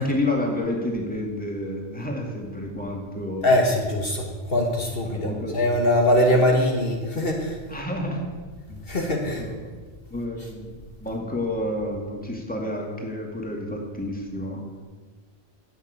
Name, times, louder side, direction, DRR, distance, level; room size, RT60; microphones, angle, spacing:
voice 1, 0.0-3.5 5.1-5.6 7.7-8.2 8.7-8.8 9.4-9.5 10.1-10.7 11.0-14.8, left 1 dB, 10° left, 0 dB, 2.2 m, -30 dB
voice 2, 3.4-7.6 8.9-9.5, left 1 dB, 60° left, 1 dB, 1.7 m, -22 dB
11.0 x 9.1 x 8.3 m, 1.5 s
omnidirectional pair, 1.1 m